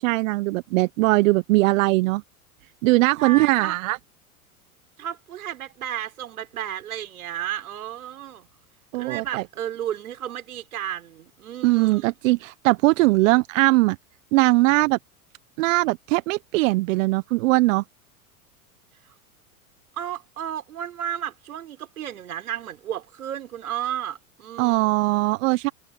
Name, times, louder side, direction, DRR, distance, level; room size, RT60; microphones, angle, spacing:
voice 1, 0.0-2.2 2.8-4.0 8.9-9.4 11.6-14.0 14.3-15.0 15.6-17.8 24.6-25.7, right 21 dB, 60° right, 1.1 m, -20 dB
voice 2, 3.2-3.7 5.0-8.5 9.0-12.1 20.0-25.0, right 10 dB, 75° right, 6.3 m, -33 dB
hypercardioid pair, 90°, 44 cm